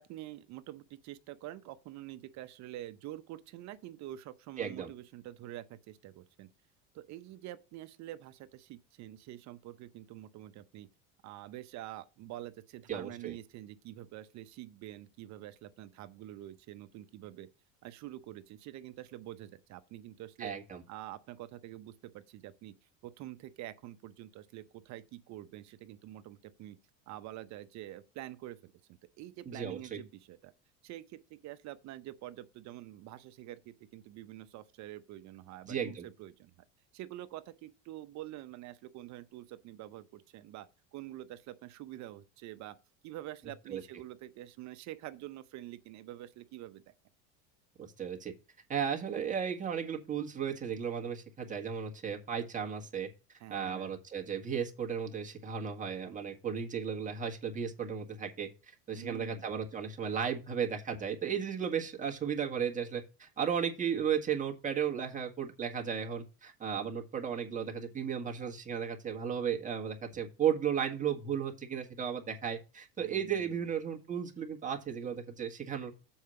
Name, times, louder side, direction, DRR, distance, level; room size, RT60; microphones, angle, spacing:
voice 1, 0.0-6.5 6.9-10.9 11.2-17.5 17.8-20.5 20.9-22.7 23.0-26.8 27.1-28.7 29.2-30.5 30.8-36.5 36.9-40.7 40.9-42.8 43.0-46.9 53.4-53.9 58.9-59.5 73.0-73.6, right 14 dB, 55° right, 0.8 m, -46 dB
voice 2, 4.6-4.9 12.9-13.4 20.4-20.8 29.4-30.0 35.7-36.1 43.7-43.8 47.8-48.3 48.7-53.1 53.5-75.9, right 7 dB, 20° right, 1.7 m, -35 dB
7.2 x 4.7 x 6.8 m
supercardioid pair, 120°, 34 cm